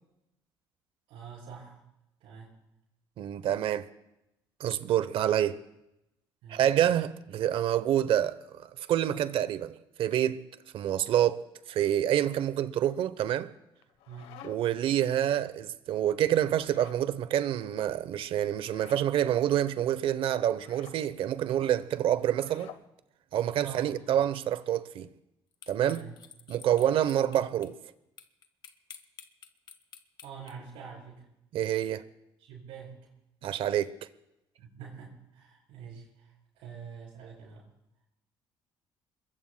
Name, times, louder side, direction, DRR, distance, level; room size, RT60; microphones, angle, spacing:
voice 1, 1.1-1.8 2.2-2.5 6.4-6.7 14.1-14.4 23.6-23.9 25.9-26.1 26.6-26.8 30.2-31.2 32.4-33.0 34.6-37.6, right 6 dB, 85° right, 7.5 m, -46 dB
voice 2, 3.2-3.9 4.6-5.6 6.5-10.5 10.7-11.4 11.7-13.5 14.4-22.7 23.3-25.1 25.7-26.0 26.5-27.8 31.5-32.0 33.4-33.9, right 11 dB, 70° right, 0.8 m, -27 dB
sound 1, 13.8-14.8 16.5-17.1 18.6-19.1 20.6-21.0 22.3-22.9, left 10 dB, 85° left, 1.0 m, -51 dB
sound 2, 25.6-27.7 28.2-30.5, left 7 dB, 50° left, 1.2 m, -49 dB
27.0 x 22.0 x 2.2 m
cardioid pair, 105°, 10 cm